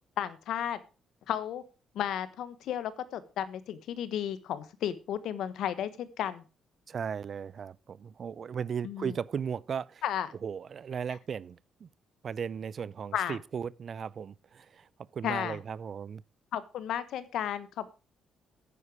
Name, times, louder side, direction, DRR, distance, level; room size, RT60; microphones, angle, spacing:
voice 1, 0.2-0.8 1.3-1.6 1.9-6.4 8.8-9.1 10.0-10.3 13.1-13.4 15.2-15.6 16.5-17.9, left 10 dB, 80° left, 1.2 m, -33 dB
voice 2, 6.9-10.0 10.4-11.9 12.2-14.9 15.1-16.2, right 7 dB, 50° right, 0.5 m, -36 dB
9.9 x 9.7 x 4.8 m
cardioid pair, 90°, 0 cm